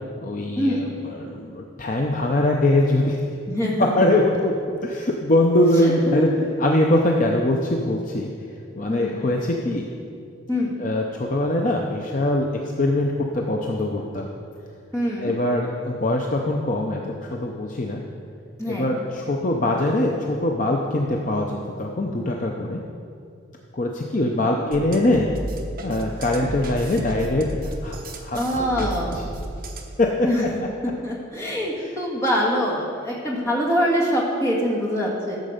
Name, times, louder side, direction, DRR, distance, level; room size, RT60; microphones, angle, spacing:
voice 1, 0.2-3.2 3.8-6.3 6.6-8.3 8.8-9.9 10.8-12.5 12.8-14.3 15.2-18.0 18.7-22.8 23.7-25.3 25.8-27.5 27.8-28.4 28.8-29.2 30.0-30.1, left 1 dB, 40° left, 0 dB, 0.6 m, -22 dB
voice 2, 3.5-4.1 5.8-6.5 8.9-9.3 10.5-10.8 14.9-15.3 18.6-18.9 24.4-24.6 28.3-29.1 30.2-30.5 30.8-35.4, equal, 15° left, -4 dB, 1.7 m, -24 dB
sound 1, 24.7-29.9, right 1 dB, 50° right, 1.0 m, -33 dB
13.0 x 6.5 x 5.1 m, 2.5 s
head